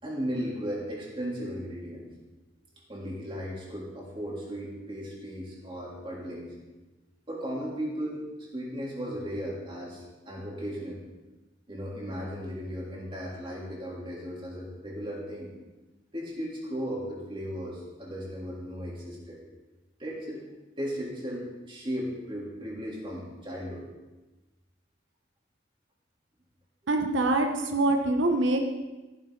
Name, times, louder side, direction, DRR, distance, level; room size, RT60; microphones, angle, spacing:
voice 1, 0.0-2.1 2.9-6.5 7.3-11.0 11.7-15.5 16.1-19.4 20.0-20.4 20.8-23.9, equal, 25° right, -4 dB, 3.4 m, -36 dB
voice 2, 26.9-28.7, right 2 dB, 85° right, 4 dB, 1.2 m, -24 dB
15.0 x 10.5 x 4.0 m, 1.1 s
head